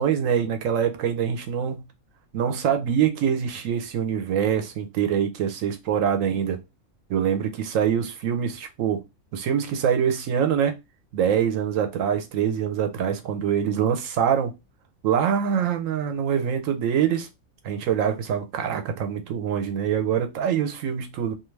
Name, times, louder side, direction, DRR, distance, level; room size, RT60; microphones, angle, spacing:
voice 1, 0.0-1.8 2.3-6.6 7.1-9.0 9.3-10.8 11.1-14.5 15.0-17.3 17.6-21.3, right 8 dB, 75° right, 1.0 m, -24 dB
2.5 x 2.4 x 3.1 m
omnidirectional pair, 1.5 m